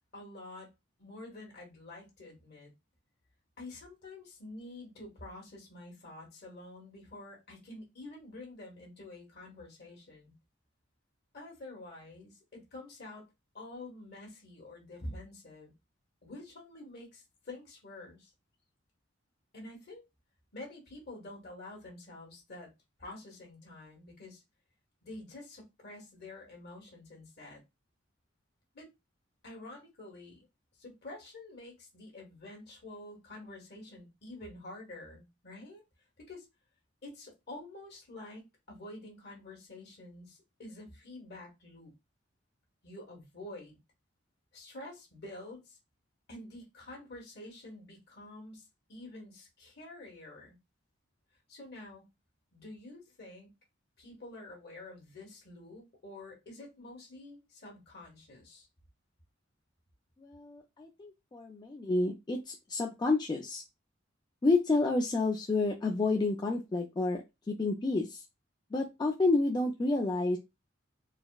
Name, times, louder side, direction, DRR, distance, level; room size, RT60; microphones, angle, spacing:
voice 1, 0.1-0.7 1.0-2.7 3.6-10.3 11.3-13.3 13.5-15.7 16.2-18.3 19.5-20.0 20.5-22.7 23.0-24.4 25.0-27.6 28.7-28.9 29.4-30.5 30.8-35.8 36.3-36.4 37.0-41.9 42.8-43.8 44.5-45.8 46.3-50.6 51.5-52.1 52.5-53.6 54.0-58.7, left 2 dB, 55° left, 1.4 m, -48 dB
voice 2, 60.2-63.6 64.4-68.2 68.7-70.4, left 3 dB, 20° left, 0.3 m, -30 dB
4.0 x 2.0 x 2.3 m
head